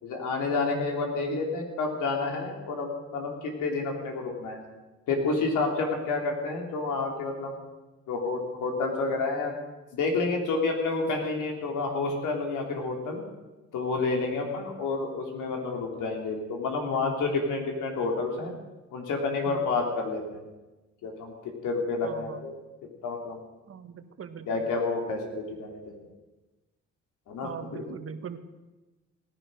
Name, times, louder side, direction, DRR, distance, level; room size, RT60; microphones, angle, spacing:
voice 1, 0.0-4.6 5.1-7.6 8.1-9.5 9.9-13.2 13.7-18.5 18.9-20.5 21.0-22.5 23.0-23.4 24.5-26.0 27.3-27.8, left 3 dB, 85° left, 2 dB, 3.2 m, -29 dB
voice 2, 22.0-22.5 23.7-24.6 27.4-28.4, right 7 dB, 50° right, 8 dB, 1.3 m, -40 dB
17.5 x 11.0 x 6.3 m, 1.1 s
cardioid pair, 90°, 30 cm